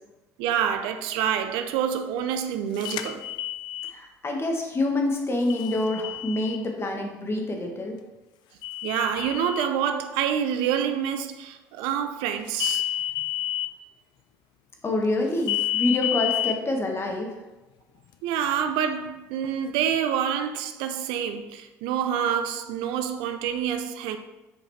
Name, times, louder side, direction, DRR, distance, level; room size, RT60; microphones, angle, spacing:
voice 1, 0.4-3.2 8.8-12.8 18.2-24.2, right 8 dB, 70° right, 0.5 m, -27 dB
sound 1, 2.8-3.9 5.5-6.6 8.6-9.7 12.5-13.7 15.5-16.5, left 13 dB, 60° left, 0.4 m, -29 dB
voice 2, 3.9-8.0 14.8-17.3, left 2 dB, 30° left, 1.5 m, -27 dB
7.2 x 4.9 x 3.2 m
hypercardioid pair, 65°, 8 cm